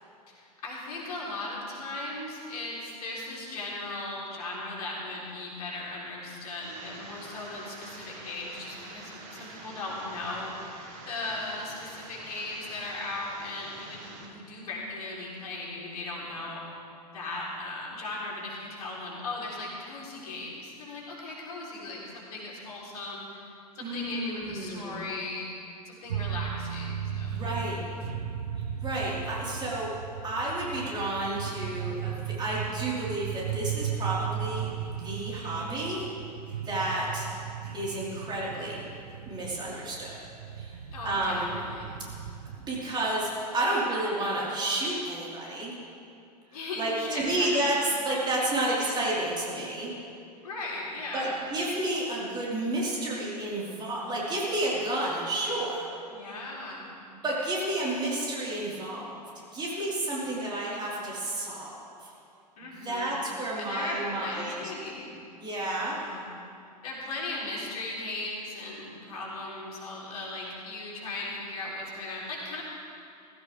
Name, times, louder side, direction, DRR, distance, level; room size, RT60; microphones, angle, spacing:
voice 1, 0.3-10.6 11.1-16.6 17.1-23.4 23.8-25.5 25.9-27.4 35.4-35.8 40.9-41.9 46.5-47.8 48.6-49.0 50.4-51.4 56.1-56.9 60.3-60.9 62.6-63.3 63.6-65.2 65.6-66.3 66.8-72.6, left 2 dB, 65° left, -4 dB, 3.8 m, -38 dB
sound 1, 6.6-14.3, right 3 dB, 50° right, 2.2 m, -46 dB
voice 2, 23.8-25.1 27.3-27.8 28.8-29.9 30.2-36.0 36.6-37.3 37.7-38.8 39.3-40.2 40.5-40.8 41.0-41.6 42.7-45.7 46.8-49.9 51.1-55.9 57.2-59.2 59.5-62.1 62.6-64.6 65.4-66.0, right 1 dB, 20° right, -6 dB, 4.5 m, -31 dB
sound 2, 26.1-42.9, right 9 dB, 70° right, 0.8 m, -36 dB
18.5 x 16.0 x 3.6 m, 2.5 s
figure-of-eight pair, 95°, 21 cm